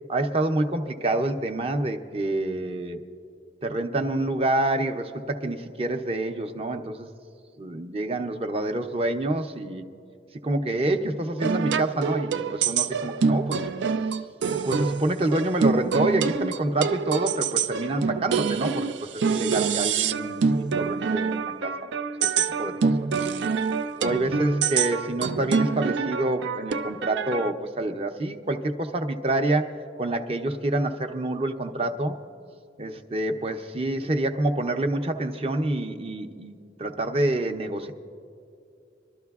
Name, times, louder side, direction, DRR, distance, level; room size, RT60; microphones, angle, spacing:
voice 1, 0.1-3.0 3.6-7.1 7.6-9.9 10.4-13.7 14.6-21.9 22.2-22.3 22.6-23.0 24.0-32.2 32.8-37.9, right 2 dB, 35° right, 6 dB, 0.6 m, -27 dB
sound 1, 11.4-27.5, right 5 dB, 90° right, 0.4 m, -26 dB
26.0 x 12.5 x 2.4 m, 2.5 s
head